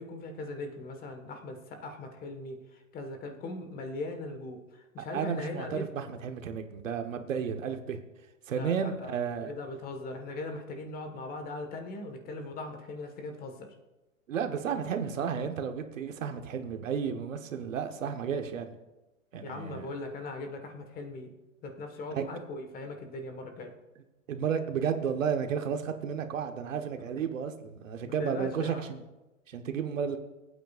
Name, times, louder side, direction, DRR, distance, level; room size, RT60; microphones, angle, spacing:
voice 1, 0.0-5.9 8.5-13.7 19.4-21.3 21.6-23.7 28.0-28.8, left 2 dB, 20° left, 5 dB, 1.6 m, -40 dB
voice 2, 5.1-8.0 8.5-9.5 14.3-18.7 19.3-19.9 22.1-22.3 24.3-29.0 29.5-30.2, right 7 dB, 70° right, 6 dB, 1.3 m, -32 dB
20.5 x 9.0 x 2.5 m, 1.1 s
hypercardioid pair, 125°, 40 cm